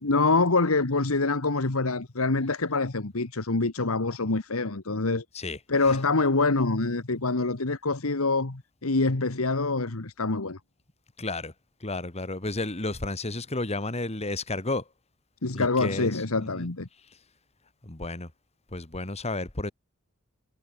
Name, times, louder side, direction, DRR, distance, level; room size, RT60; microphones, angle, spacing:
voice 1, 0.0-5.2 5.7-10.6 15.4-16.9, left 3 dB, 85° left, 1.6 m, -25 dB
voice 2, 11.2-11.5 11.8-14.8 15.5-16.1 16.4-16.7 17.8-18.3 18.7-19.7, left 2 dB, 30° left, 2.3 m, -32 dB
head